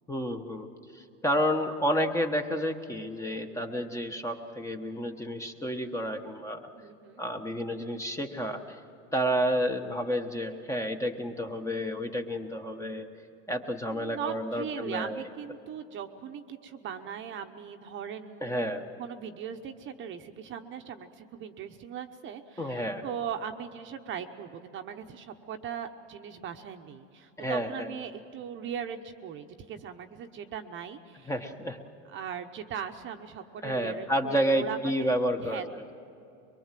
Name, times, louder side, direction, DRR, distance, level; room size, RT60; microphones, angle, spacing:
voice 1, 0.1-0.7 0.9-6.6 7.2-8.6 9.1-13.1 13.5-15.3 18.4-18.8 22.6-23.0 27.4-27.9 31.3-31.8 33.6-35.8, equal, 10° left, 5 dB, 1.1 m, -30 dB
voice 2, 6.7-7.2 13.9-18.6 19.0-31.3 32.1-35.1 35.4-35.6, right 8 dB, 35° right, 6 dB, 1.0 m, -39 dB
23.5 x 22.5 x 7.6 m, 2.7 s
supercardioid pair, 135°, 36 cm